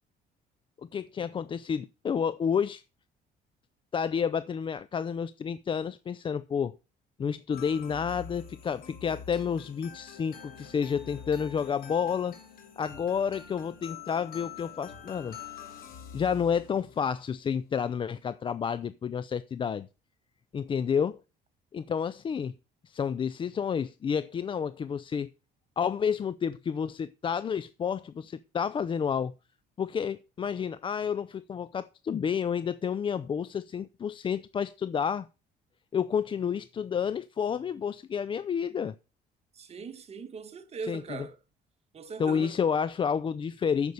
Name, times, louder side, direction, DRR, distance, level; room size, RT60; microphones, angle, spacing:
voice 1, 0.9-2.8 3.9-6.7 7.2-12.4 12.8-15.4 16.1-19.9 20.5-21.2 21.7-22.5 22.8-25.3 25.8-29.3 29.8-35.3 35.9-39.0 40.9-41.3 42.2-43.9, left 7 dB, 30° left, 0.4 m, -30 dB
sound 1, 7.5-17.2, left 7 dB, 60° left, 2.8 m, -46 dB
voice 2, 39.5-41.4 41.9-42.5, right 5 dB, 40° right, 1.5 m, -40 dB
9.4 x 6.9 x 6.4 m
cardioid pair, 110°, 17 cm